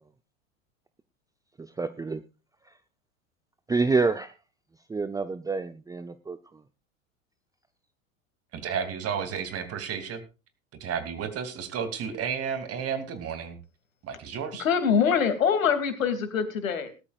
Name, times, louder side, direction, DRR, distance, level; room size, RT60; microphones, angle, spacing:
voice 1, 1.6-2.2 3.7-4.3 4.9-6.4, right 4 dB, 10° right, 11 dB, 0.7 m, -27 dB
voice 2, 8.5-10.2 10.8-13.6 14.0-14.6, right 7 dB, 35° right, 10 dB, 2.8 m, -32 dB
voice 3, 14.6-17.0, left 7 dB, 80° left, 9 dB, 2.8 m, -24 dB
19.5 x 13.0 x 2.5 m, 0.29 s
hypercardioid pair, 85°, 40 cm